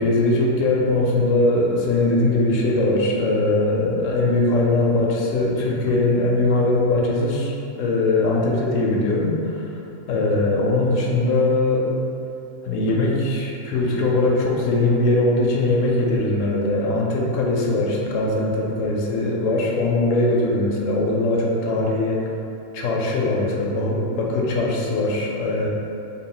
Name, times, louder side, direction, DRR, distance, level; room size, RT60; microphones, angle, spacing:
voice 1, 0.0-9.8 10.1-11.9 12.6-22.3 22.7-25.7, left 2 dB, 75° left, -2 dB, 0.9 m, -21 dB
3.6 x 2.3 x 3.7 m, 2.7 s
omnidirectional pair, 1.3 m